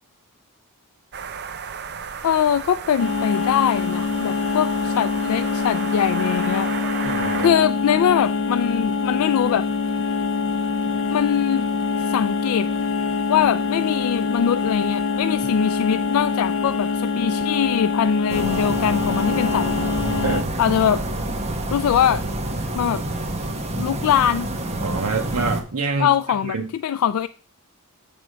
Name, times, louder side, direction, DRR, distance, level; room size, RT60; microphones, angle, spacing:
sound 1, 1.1-7.5, right 6 dB, 50° right, 0.6 m, -33 dB
voice 1, 2.2-6.7 7.4-9.7 11.1-11.6 12.1-12.7 13.3-19.7 20.6-21.0 21.7-22.2 22.7-23.0 23.8-24.5 26.0-27.3, left 8 dB, 75° left, 12 dB, 0.3 m, -22 dB
sound 2, 3.0-20.4, left 5 dB, 60° left, 0.7 m, -24 dB
voice 2, 7.0-7.6 20.2-20.5 24.8-26.1 26.4-26.7, right 4 dB, 80° right, 2 dB, 0.8 m, -26 dB
sound 3, 18.3-25.6, right 1 dB, 30° right, 1.1 m, -27 dB
7.8 x 3.4 x 6.2 m, 0.41 s
head